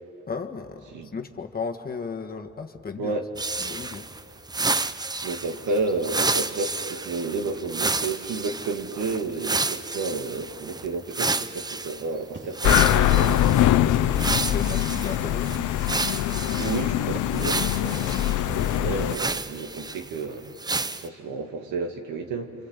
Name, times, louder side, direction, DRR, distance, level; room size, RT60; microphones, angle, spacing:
voice 1, 0.3-3.2 3.6-4.1 14.2-15.5, left 5 dB, 30° left, 4 dB, 1.5 m, -35 dB
voice 2, 3.0-3.3 5.2-13.4 16.6-20.5 21.0-22.7, right 3 dB, 90° right, 4 dB, 2.3 m, -31 dB
sound 1, 3.4-12.0 12.5-13.7 14.1-16.9 17.3-20.2 20.6-21.1, right 3 dB, 15° right, 0.6 m, -30 dB
sound 2, 12.0-18.5, right 3 dB, 40° right, 2.3 m, -47 dB
sound 3, 12.6-19.2, left 12 dB, 80° left, 0.8 m, -23 dB
27.5 x 26.0 x 8.2 m, 2.9 s
cardioid pair, 90°, 30 cm